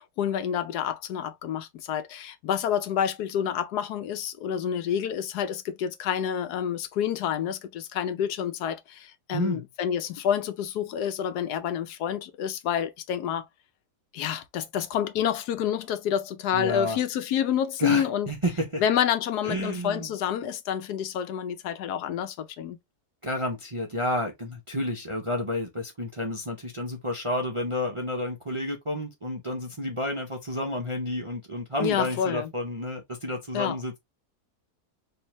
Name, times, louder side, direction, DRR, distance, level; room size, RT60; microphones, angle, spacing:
voice 1, 0.0-13.5 14.1-18.3 18.8-22.8 31.8-32.5 33.5-33.8, left 9 dB, 85° left, 1.2 m, -28 dB
voice 2, 9.3-9.7 16.5-17.0 17.8-18.8 19.4-20.1 23.2-34.0, left 1 dB, 40° right, 0.4 m, -30 dB
4.5 x 2.6 x 3.0 m
omnidirectional pair, 1.7 m